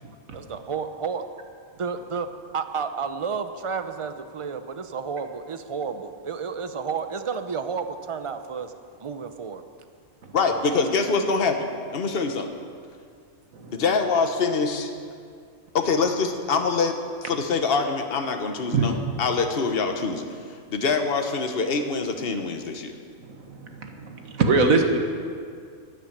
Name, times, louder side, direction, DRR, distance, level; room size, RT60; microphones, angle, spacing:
voice 1, 0.3-1.2 1.8-8.7 9.0-9.6, right 5 dB, 35° right, 9 dB, 0.5 m, -31 dB
voice 2, 10.3-12.5 13.7-14.9 15.7-20.2 20.7-23.0, left 4 dB, 45° left, 5 dB, 1.3 m, -24 dB
voice 3, 23.3-25.0, right 3 dB, 85° right, 4 dB, 1.8 m, -23 dB
12.5 x 9.2 x 9.9 m, 2.2 s
omnidirectional pair, 1.4 m